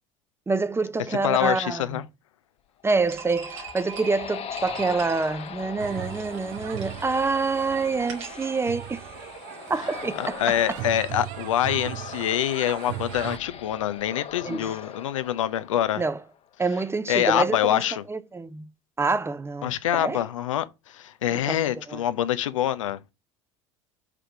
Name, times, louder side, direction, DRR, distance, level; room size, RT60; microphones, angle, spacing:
voice 1, 0.5-2.0 2.8-9.0 9.7-10.6 14.4-14.7 16.0-16.2 16.6-17.8 18.1-18.7 19.0-20.2 21.5-21.6 21.9-22.0, right 4 dB, 15° right, 0.6 m, -27 dB
voice 2, 1.2-2.0 10.2-16.0 17.1-18.0 19.6-23.1, left 11 dB, 75° left, 0.5 m, -25 dB
sound 1, 2.8-16.4, left 8 dB, 40° left, 0.9 m, -41 dB
sound 2, 3.1-9.3, right 7 dB, 70° right, 2.0 m, -43 dB
Kitano jinja shrine matsuri, 5.8-13.4, right 18 dB, 55° right, 0.4 m, -38 dB
4.9 x 4.9 x 5.7 m
figure-of-eight pair, 65°, 17 cm